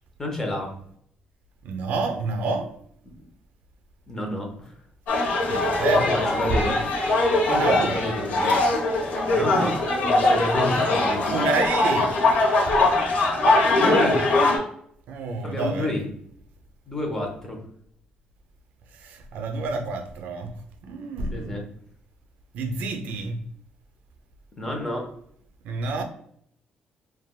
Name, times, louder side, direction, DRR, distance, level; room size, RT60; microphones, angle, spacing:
voice 1, 0.2-0.7 4.1-4.7 6.0-6.8 7.5-8.6 9.3-11.3 13.2-13.3 13.8-14.2 15.4-16.1 16.9-17.6 21.3-21.6 24.6-25.1, left 1 dB, 15° left, 0.7 m, -29 dB
voice 2, 1.6-2.7 5.5-6.2 6.5-6.6 7.5-8.0 11.3-12.2 12.7-12.8 15.1-15.9 18.9-20.5 20.8-21.6 22.5-23.4 25.6-26.0, right 3 dB, 75° right, 0.4 m, -28 dB
sound 1, 5.1-14.6, left 2 dB, 65° left, 0.7 m, -21 dB
3.2 x 2.2 x 2.2 m
cardioid pair, 140°, 3 cm